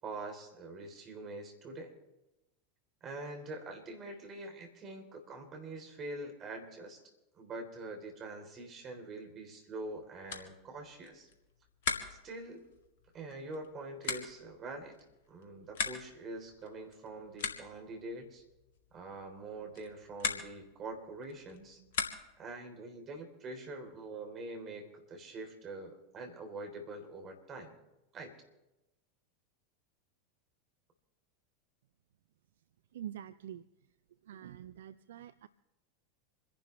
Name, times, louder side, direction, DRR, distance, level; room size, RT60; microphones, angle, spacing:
voice 1, 0.0-1.9 3.0-7.0 7.3-11.3 12.1-12.6 13.1-15.0 15.3-18.4 18.9-21.8 22.4-27.8 28.1-28.3, right 2 dB, 35° right, 4 dB, 3.7 m, -44 dB
sound 1, 9.7-22.6, left 6 dB, 65° left, 1.9 m, -42 dB
voice 2, 32.9-33.7 34.2-35.5, right 11 dB, 70° right, 14 dB, 0.5 m, -46 dB
27.5 x 11.5 x 3.3 m, 0.99 s
figure-of-eight pair, 85°, 0 cm